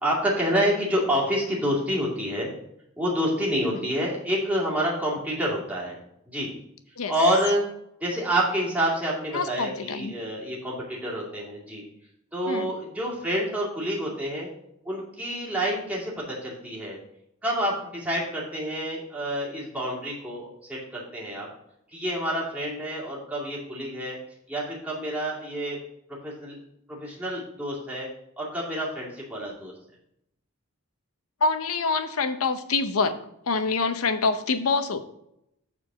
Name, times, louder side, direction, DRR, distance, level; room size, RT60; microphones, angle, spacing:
voice 1, 0.0-2.5 3.0-6.0 6.3-6.5 7.1-7.6 8.0-11.8 12.3-14.5 14.8-17.0 17.4-21.5 21.9-24.2 24.5-25.8 26.2-26.6 26.9-28.1 28.4-29.7, equal, 5° right, -6 dB, 2.4 m, -28 dB
voice 2, 9.3-10.1 12.5-12.7 31.4-33.2 33.5-35.0, left 4 dB, 85° left, 10 dB, 0.7 m, -26 dB
7.0 x 4.5 x 6.2 m, 0.78 s
head